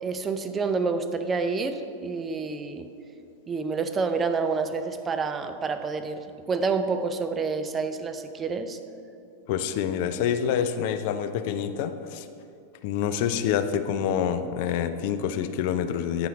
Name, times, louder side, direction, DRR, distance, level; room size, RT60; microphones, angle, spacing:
voice 1, 0.0-2.9 3.5-8.8, right 4 dB, 20° right, 8 dB, 0.5 m, -28 dB
voice 2, 9.5-12.3 12.8-16.3, left 8 dB, 50° left, 10 dB, 0.4 m, -27 dB
8.7 x 5.6 x 4.0 m, 2.6 s
figure-of-eight pair, 90°, 0 cm